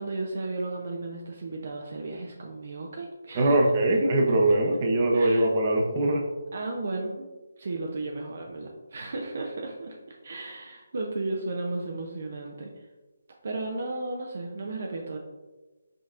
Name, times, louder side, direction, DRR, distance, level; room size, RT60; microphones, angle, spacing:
voice 1, 0.0-3.6 5.1-5.5 6.5-7.3 7.6-12.7 13.4-15.2, right 2 dB, 55° right, 1 dB, 0.6 m, -34 dB
voice 2, 3.3-6.3, right 1 dB, 35° right, 0 dB, 0.8 m, -22 dB
5.1 x 4.1 x 2.5 m, 1.2 s
figure-of-eight pair, 155°, 0 cm